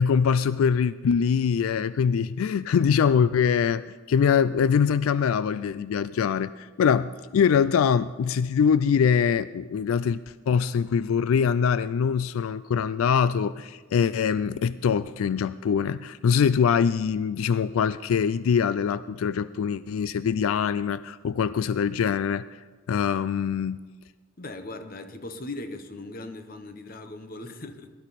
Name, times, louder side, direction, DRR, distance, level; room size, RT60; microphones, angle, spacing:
voice 1, 0.0-10.2 10.5-22.6 22.9-23.8, left 7 dB, 85° left, 16 dB, 0.3 m, -23 dB
voice 2, 24.4-27.9, left 2 dB, 45° left, 8 dB, 0.9 m, -39 dB
19.0 x 11.5 x 4.1 m, 1.4 s
head